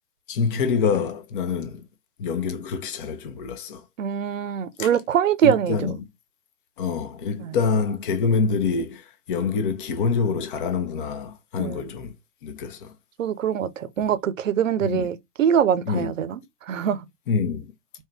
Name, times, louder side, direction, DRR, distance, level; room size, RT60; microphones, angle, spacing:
voice 1, 0.3-1.8 2.2-3.8 4.8-4.9 5.4-6.1 6.8-12.1 12.4-12.9 14.8-15.1 15.9-16.1 17.3-17.7, left 5 dB, 35° left, 0.9 m, -26 dB
voice 2, 4.0-5.9 7.4-7.5 11.6-11.9 13.2-16.4 16.7-17.0, right 8 dB, 55° right, 0.8 m, -23 dB
4.6 x 3.0 x 3.3 m
figure-of-eight pair, 115°, 47 cm